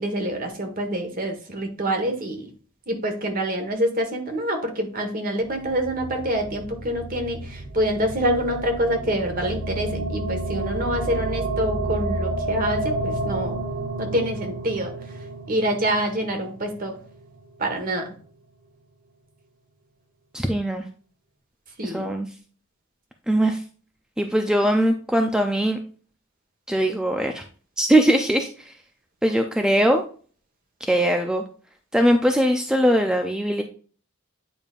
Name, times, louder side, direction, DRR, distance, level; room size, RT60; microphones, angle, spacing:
voice 1, 0.0-2.5 2.9-13.6 14.0-14.9 15.5-17.0 17.6-18.1 21.8-22.1, right 1 dB, 40° right, 5 dB, 1.4 m, -26 dB
sound 1, 5.4-17.7, right 2 dB, 70° right, 1.3 m, -30 dB
voice 2, 20.3-20.8 21.8-22.3 23.3-23.6 24.2-25.8 26.7-27.4 27.8-28.8 29.2-30.0 30.9-31.4 31.9-33.6, right 1 dB, 5° right, 4 dB, 0.4 m, -21 dB
9.0 x 5.1 x 2.5 m, 0.41 s
head